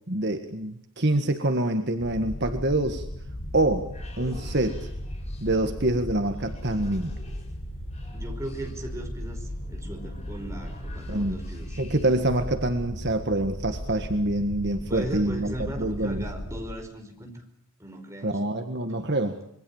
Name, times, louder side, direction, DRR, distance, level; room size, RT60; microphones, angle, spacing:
voice 1, 0.1-3.1 3.5-3.9 4.2-4.9 5.4-7.1 11.1-11.4 11.8-16.3 18.2-19.4, right 1 dB, 50° right, 6 dB, 1.7 m, -26 dB
sound 1, 2.0-16.7, equal, 60° left, 6.3 m, -36 dB
sound 2, 3.8-12.4, equal, 30° left, 7.3 m, -50 dB
voice 2, 8.1-11.8 14.9-17.4 17.8-18.5, right 1 dB, 15° right, 3 dB, 5.2 m, -38 dB
26.5 x 23.0 x 7.2 m, 0.75 s
head